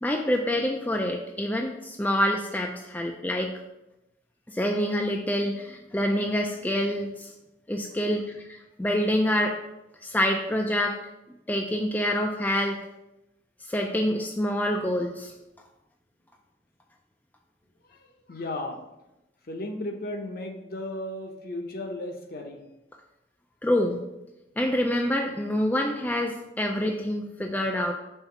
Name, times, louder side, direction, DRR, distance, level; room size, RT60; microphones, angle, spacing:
voice 1, 0.0-3.5 4.5-7.3 7.7-8.2 8.5-9.5 10.0-10.9 11.5-12.8 13.7-15.3 23.6-24.0 24.6-27.9, equal, 10° left, 1 dB, 0.3 m, -26 dB
voice 2, 17.8-18.8 19.4-22.6, left 1 dB, 50° left, 3 dB, 0.8 m, -35 dB
5.6 x 3.5 x 5.8 m, 0.94 s
head